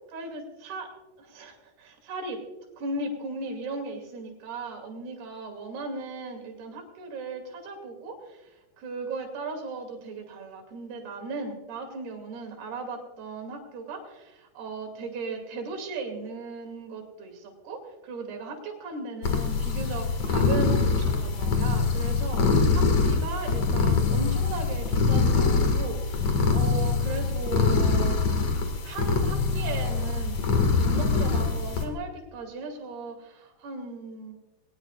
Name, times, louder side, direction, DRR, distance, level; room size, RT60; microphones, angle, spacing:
voice 1, 0.1-0.9 1.2-2.4 2.8-28.5 28.8-34.3, right 3 dB, 75° right, 3 dB, 4.5 m, -37 dB
sound 1, 19.2-31.9, left 4 dB, 50° left, 2.5 m, -24 dB
21.0 x 19.0 x 2.4 m, 1.1 s
omnidirectional pair, 4.7 m